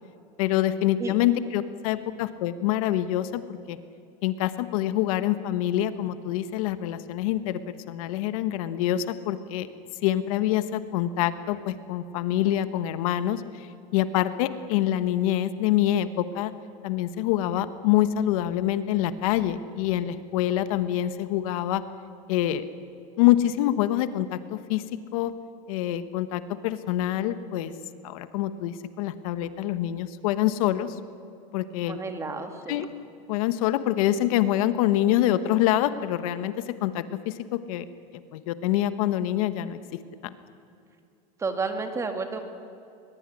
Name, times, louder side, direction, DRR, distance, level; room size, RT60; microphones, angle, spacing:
voice 1, 0.4-3.8 4.2-9.7 10.0-13.7 13.9-16.5 16.8-21.8 22.3-22.6 23.2-24.8 25.1-25.3 25.7-27.7 28.0-31.0 31.5-32.0 32.7-32.9 33.3-37.8 38.3-40.3, left 13 dB, 70° left, 12 dB, 1.3 m, -26 dB
voice 2, 31.8-32.9 41.4-42.4, right 4 dB, 15° right, 6 dB, 2.0 m, -31 dB
22.0 x 21.5 x 9.9 m, 2.5 s
supercardioid pair, 155°, 19 cm